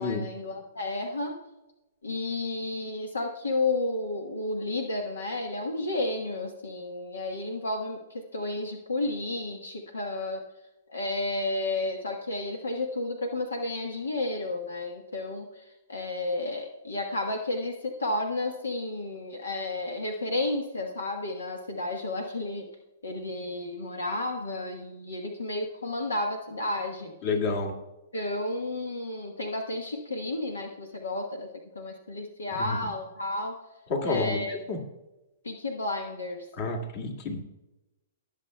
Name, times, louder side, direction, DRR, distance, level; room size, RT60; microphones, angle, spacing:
voice 1, 0.0-1.4 2.0-10.4 10.9-22.7 23.0-27.1 28.1-31.5 31.7-33.6 34.0-34.8 35.4-36.5, left 2 dB, 85° left, 4 dB, 1.2 m, -32 dB
voice 2, 27.2-27.7 32.6-32.8 33.9-34.8 36.6-37.4, left 3 dB, 45° left, 3 dB, 2.0 m, -29 dB
19.5 x 7.0 x 2.2 m, 1.0 s
hypercardioid pair, 125°, 0 cm